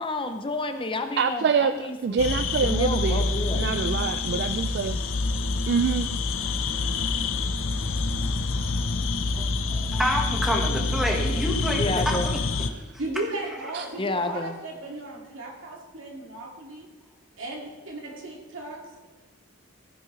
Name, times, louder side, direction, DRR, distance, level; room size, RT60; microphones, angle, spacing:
voice 1, 0.0-2.2 2.6-3.7 11.8-12.3 14.0-14.6, left 2 dB, 25° left, 7 dB, 0.6 m, -30 dB
voice 2, 1.2-1.7 2.0-3.2 3.5-5.0 5.7-6.1 7.7-8.0 8.6-8.8 13.7-13.8, right 5 dB, 55° right, 10 dB, 0.3 m, -25 dB
sound 1, 2.2-12.7, left 3 dB, 70° left, 0.7 m, -27 dB
voice 3, 9.3-12.7, equal, ahead, 0 dB, 1.4 m, -28 dB
voice 4, 13.0-16.9 17.4-18.9, right 2 dB, 70° right, 0 dB, 2.3 m, -35 dB
15.0 x 9.5 x 3.2 m, 1.2 s
head